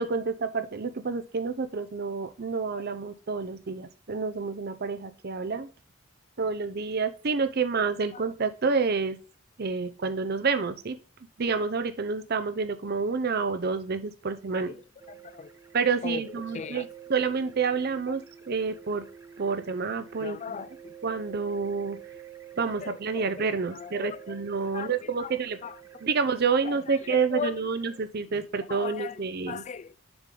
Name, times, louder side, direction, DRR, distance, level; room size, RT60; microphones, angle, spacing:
voice 1, 0.0-5.7 6.4-9.2 9.6-11.0 11.4-14.8 15.7-19.0 19.4-20.4 21.0-22.0 22.6-25.6 26.0-29.6, right 5 dB, 50° right, 0.6 m, -29 dB
voice 2, 14.5-14.8 15.1-15.5 16.0-16.9 20.2-20.9 22.8-24.4 24.7-25.8 26.6-27.7 28.3-30.0, left 6 dB, 35° left, 0.3 m, -39 dB
sound 1, 15.0-28.1, right 9 dB, 15° right, 0.6 m, -49 dB
7.1 x 5.0 x 3.7 m
head